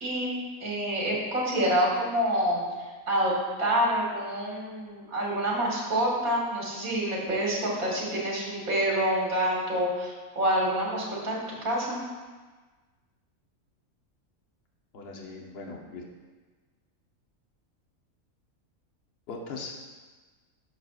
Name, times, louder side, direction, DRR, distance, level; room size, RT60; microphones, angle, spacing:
voice 1, 0.0-2.6 3.1-3.3 3.6-12.0, right 1 dB, 80° right, -4 dB, 2.4 m, -27 dB
voice 2, 14.9-16.0 19.3-19.8, left 3 dB, 50° left, -1 dB, 1.1 m, -39 dB
10.5 x 6.5 x 2.4 m, 1.3 s
omnidirectional pair, 1.5 m